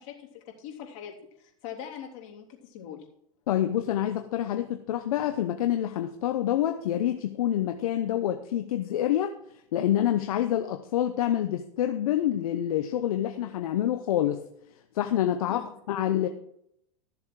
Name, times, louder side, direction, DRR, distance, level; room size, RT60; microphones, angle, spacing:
voice 1, 0.0-3.0 15.5-15.7, left 9 dB, 60° left, -1 dB, 3.4 m, -42 dB
voice 2, 3.5-9.3 9.7-14.4 14.9-16.3, left 11 dB, 80° left, 7 dB, 0.9 m, -27 dB
14.0 x 7.2 x 4.7 m, 0.72 s
hypercardioid pair, 115°, 18 cm